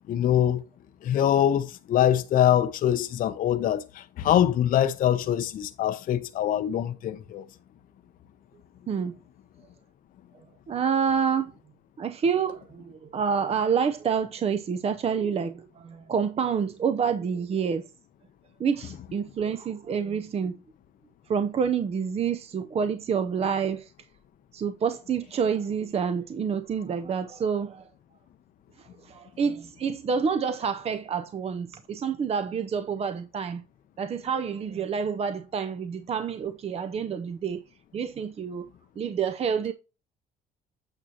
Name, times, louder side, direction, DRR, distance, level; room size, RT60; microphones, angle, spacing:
voice 1, 0.1-0.6 1.0-7.4, left 10 dB, 55° left, 0.7 m, -24 dB
voice 2, 10.7-11.5 12.0-17.8 18.6-20.5 21.3-23.9 24.5-27.8 29.0-33.6 34.0-37.6 37.9-38.7 39.0-39.7, right 6 dB, 35° right, 0.6 m, -28 dB
8.8 x 6.2 x 2.9 m
cardioid pair, 110°, 17 cm